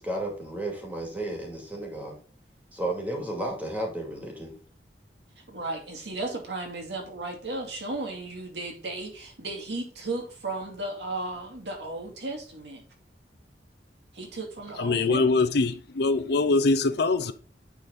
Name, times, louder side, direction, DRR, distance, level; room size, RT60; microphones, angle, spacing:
voice 1, 0.0-2.1 2.7-4.6, right 1 dB, 10° right, 2.3 m, -33 dB
voice 2, 5.5-12.8 14.1-15.3, right 2 dB, 75° right, 2.4 m, -35 dB
voice 3, 14.8-17.3, left 3 dB, 65° left, 0.6 m, -23 dB
9.3 x 4.1 x 3.9 m
head